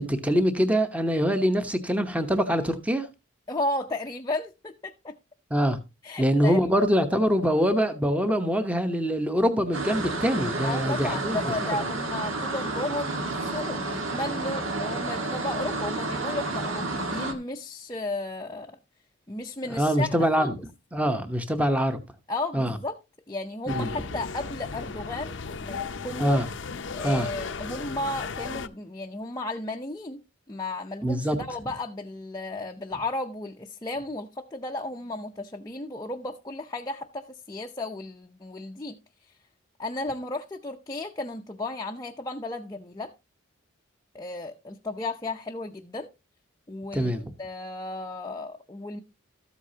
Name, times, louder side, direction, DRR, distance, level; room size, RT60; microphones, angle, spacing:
voice 1, 0.0-3.1 5.5-5.8 6.2-11.5 19.8-20.5 20.9-22.0 22.5-22.8 23.7-23.9 26.2-26.5 27.0-27.3 31.0-31.4 46.9-47.2, equal, 5° right, 0.9 m, -24 dB
voice 2, 3.5-5.2 6.0-6.6 10.6-18.8 19.3-20.6 22.3-23.0 23.3-26.4 26.9-39.0 39.8-43.1 44.1-46.1 46.7-47.1 47.4-49.0, left 2 dB, 20° left, 0.5 m, -34 dB
sound 1, 9.7-17.3, right 2 dB, 75° right, 1.7 m, -30 dB
sound 2, 23.7-28.7, left 5 dB, 60° left, 0.6 m, -35 dB
13.5 x 8.2 x 2.8 m
head